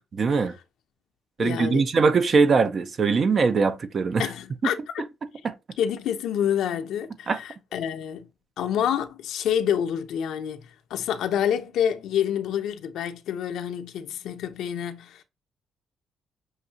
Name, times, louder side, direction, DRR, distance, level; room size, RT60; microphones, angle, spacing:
voice 1, 0.1-0.5 1.4-4.3 5.4-5.5 7.3-7.4, right 4 dB, 45° right, 0.7 m, -21 dB
voice 2, 1.4-1.9 4.2-4.8 5.8-8.3 8.6-15.2, left 9 dB, 80° left, 0.7 m, -28 dB
6.4 x 2.6 x 2.8 m
cardioid pair, 90°, 0 cm